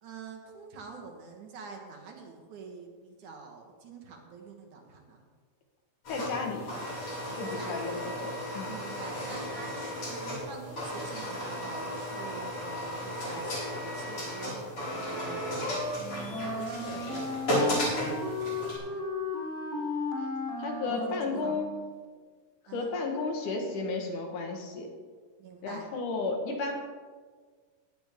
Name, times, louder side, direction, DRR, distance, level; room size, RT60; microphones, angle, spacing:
voice 1, 0.0-5.2 7.3-7.8 8.6-15.4 16.1-18.2 18.7-19.0 20.9-21.6 22.7-23.0 25.4-25.9, right 5 dB, 70° right, 2 dB, 2.9 m, -46 dB
sound 1, 6.0-18.8, equal, 50° left, 5.8 m, -34 dB
voice 2, 6.1-6.7 7.4-8.7 20.6-21.7 22.7-24.9 25.6-26.7, left 3 dB, 75° left, 2 dB, 2.9 m, -33 dB
Wind instrument woodwind instrument, 15.9-21.8, left 2 dB, ahead, 2.8 m, -35 dB
17.5 x 10.0 x 3.6 m, 1.5 s
omnidirectional pair, 3.7 m